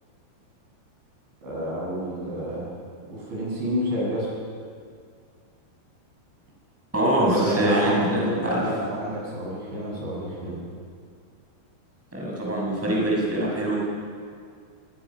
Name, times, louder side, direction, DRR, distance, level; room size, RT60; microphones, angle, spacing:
voice 1, 1.4-2.7 3.1-4.3 7.2-10.6 12.7-12.9, equal, 85° right, -5 dB, 10.5 m, -29 dB
voice 2, 6.9-8.6 12.1-13.8, right 1 dB, 5° right, -4 dB, 6.4 m, -24 dB
27.0 x 20.5 x 6.4 m, 2.2 s
omnidirectional pair, 5.1 m